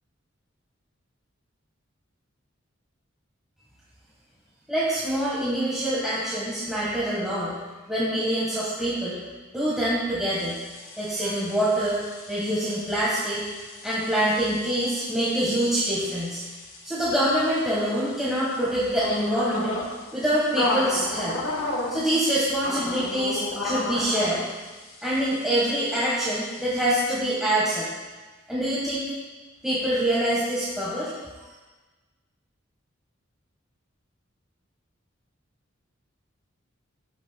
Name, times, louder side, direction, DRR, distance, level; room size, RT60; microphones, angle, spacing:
voice 1, 4.7-7.6 7.9-9.2 9.5-10.6 11.0-13.5 13.8-16.4 16.8-19.8 20.1-21.4 21.9-24.4 25.0-27.9 28.5-29.0 29.6-31.1, right 1 dB, ahead, -9 dB, 1.5 m, -25 dB
sound 1, 10.3-27.0, left 1 dB, 85° left, 1.4 m, -34 dB
13.5 x 7.1 x 2.3 m, 1.3 s
head